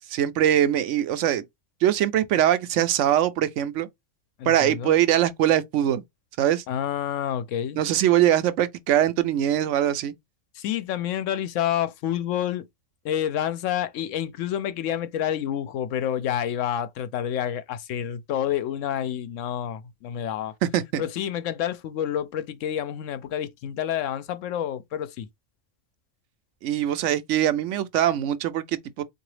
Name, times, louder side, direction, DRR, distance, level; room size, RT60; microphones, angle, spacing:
voice 1, 0.1-1.4 1.8-3.9 4.5-6.0 6.4-6.6 7.8-10.1 20.7-21.0 26.6-29.0, right 11 dB, 80° right, 0.9 m, -22 dB
voice 2, 4.4-4.9 6.7-7.8 10.5-12.7 13.0-20.5 21.0-25.3, left 10 dB, 85° left, 0.9 m, -28 dB
3.8 x 2.6 x 3.1 m
omnidirectional pair, 1.3 m